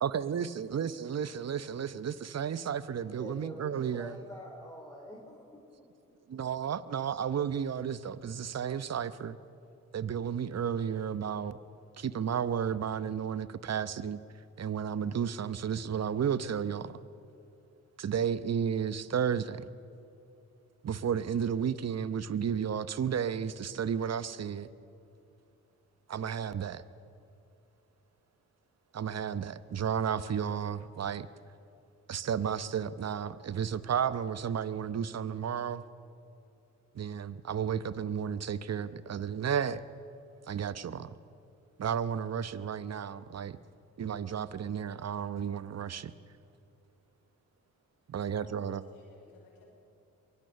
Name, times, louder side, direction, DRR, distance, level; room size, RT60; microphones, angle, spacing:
voice 1, 0.0-4.2 6.3-9.4 9.9-11.6 12.0-14.2 14.6-17.0 18.0-19.6 20.8-24.7 26.1-26.8 28.9-31.3 32.1-35.8 36.9-39.8 40.5-41.1 41.8-43.6 44.0-46.1 48.1-48.8, right 8 dB, 45° right, 0.9 m, -33 dB
voice 2, 3.0-5.6, left 1 dB, 10° left, 3.9 m, -46 dB
voice 3, 48.3-49.7, left 3 dB, 90° left, 4.9 m, -56 dB
22.5 x 18.0 x 6.9 m
hypercardioid pair, 45°, 37 cm